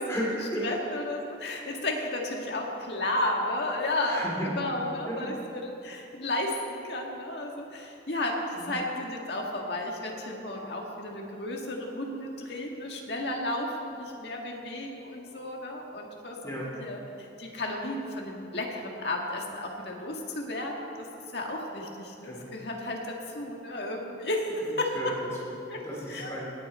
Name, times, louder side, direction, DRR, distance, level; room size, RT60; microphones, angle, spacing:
voice 1, 0.1-0.7 4.0-4.5 5.1-5.4 8.5-8.7 16.4-16.8 22.2-22.5 24.9-25.5 25.8-26.5, equal, 15° left, -4 dB, 3.2 m, -34 dB
voice 2, 0.6-21.1 21.3-25.1 25.7-26.3, left 1 dB, 65° left, 0 dB, 1.8 m, -33 dB
19.0 x 9.1 x 4.3 m, 2.7 s
head